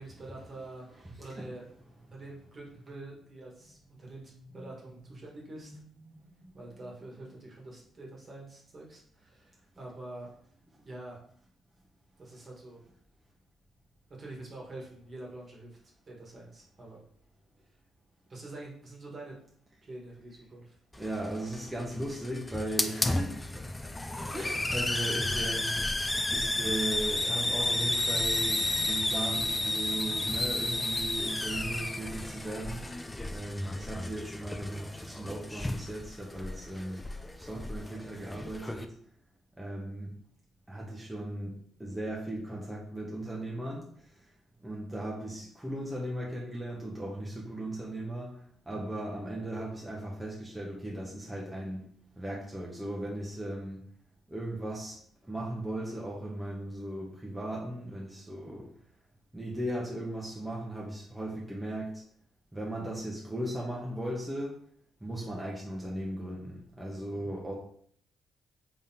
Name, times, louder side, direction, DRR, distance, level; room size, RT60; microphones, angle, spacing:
voice 1, 0.0-1.7 2.1-5.7 6.5-10.3 10.8-11.2 12.2-12.8 14.2-15.8 16.0-17.0 18.3-19.3 19.8-20.7, right 2 dB, 40° right, -3 dB, 1.4 m, -46 dB
voice 2, 1.0-1.5 4.5-4.7 5.6-6.5 6.8-6.9 21.0-23.6 24.3-32.9 33.3-37.1 37.4-38.9 39.6-40.1 40.7-44.3 44.6-48.4 48.7-51.9 52.2-53.8 54.3-55.0 55.2-58.7 59.3-62.0 62.5-64.5 65.0-67.5, right 1 dB, 10° right, -4 dB, 0.8 m, -37 dB
Hiss, 20.9-38.8, left 2 dB, 15° left, 0.4 m, -32 dB
3.6 x 3.6 x 2.8 m, 0.62 s
cardioid pair, 90°, 0 cm